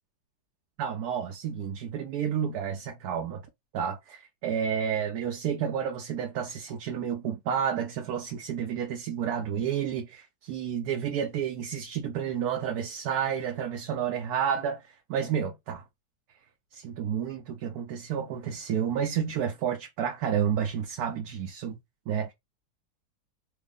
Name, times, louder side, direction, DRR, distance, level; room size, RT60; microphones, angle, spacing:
voice 1, 0.8-3.4 3.7-14.8 15.1-15.8 16.7-21.8 22.1-22.3, right 8 dB, 75° right, 1.1 m, -30 dB
3.3 x 2.0 x 3.6 m
omnidirectional pair, 1.7 m